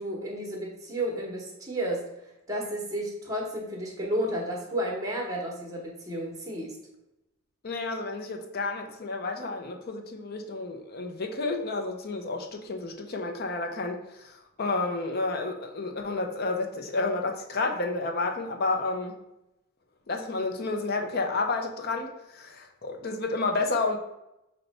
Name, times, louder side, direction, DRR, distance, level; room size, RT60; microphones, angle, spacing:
voice 1, 0.0-2.0 2.5-6.8, right 1 dB, 15° right, -1 dB, 0.9 m, -32 dB
voice 2, 7.6-19.2 20.1-24.0, left 3 dB, 45° left, 4 dB, 0.5 m, -30 dB
5.5 x 2.2 x 4.0 m, 0.89 s
head